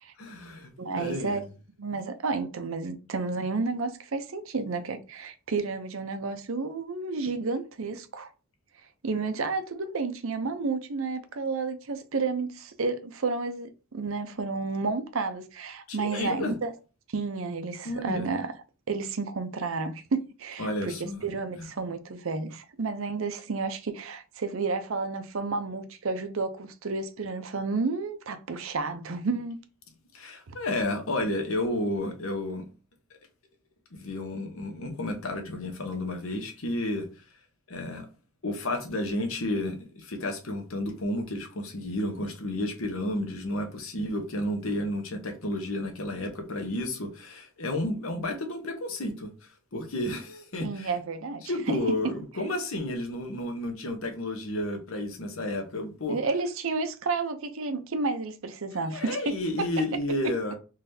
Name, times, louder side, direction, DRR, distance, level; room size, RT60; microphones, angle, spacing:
voice 1, 0.2-1.4 15.9-16.5 17.8-18.3 20.6-21.2 21.6-21.7 30.1-32.6 33.9-37.1 37.7-38.1 38.4-49.3 49.7-50.9 51.4-56.2 58.8-60.5, left 1 dB, 70° left, 1.0 m, -31 dB
voice 2, 0.8-1.4 1.8-8.3 9.0-16.7 17.1-18.5 18.9-20.9 21.2-29.6 30.5-30.6 50.6-51.8 52.0-52.1 56.1-59.7, right 4 dB, 70° right, 0.6 m, -31 dB
3.9 x 3.2 x 2.7 m
head